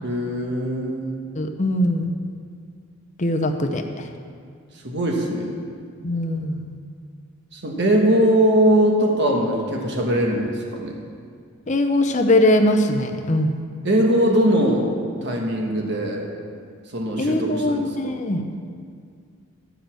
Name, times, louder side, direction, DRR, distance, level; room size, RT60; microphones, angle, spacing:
voice 1, 0.0-1.2 4.8-5.5 7.5-10.9 13.8-14.9 15.2-16.2 16.9-18.2, right 1 dB, 55° right, 0 dB, 1.3 m, -21 dB
voice 2, 1.3-2.1 3.2-4.1 6.0-6.7 11.7-13.6 17.2-18.4, left 1 dB, 35° left, 4 dB, 0.7 m, -21 dB
12.0 x 5.3 x 7.4 m, 2.1 s
head